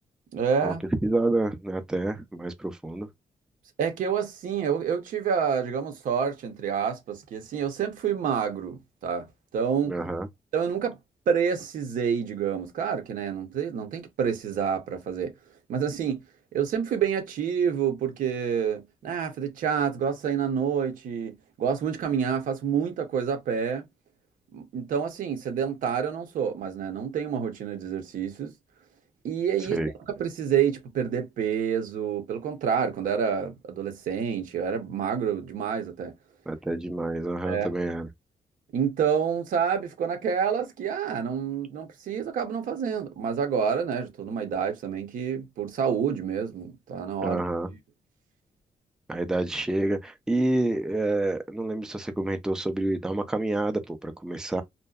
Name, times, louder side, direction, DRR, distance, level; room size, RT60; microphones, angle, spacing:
voice 1, 0.3-0.8 3.8-9.3 9.5-10.0 10.5-11.0 11.3-15.3 15.7-16.3 16.5-23.9 24.5-28.5 29.2-29.8 30.2-36.1 37.4-37.7 38.7-47.4, right 7 dB, 85° right, 0.8 m, -28 dB
voice 2, 1.0-3.1 9.9-10.3 29.7-29.9 36.5-38.1 47.2-47.7 49.1-54.6, right 2 dB, 5° right, 0.4 m, -28 dB
2.6 x 2.2 x 2.3 m
cardioid pair, 105°, 14 cm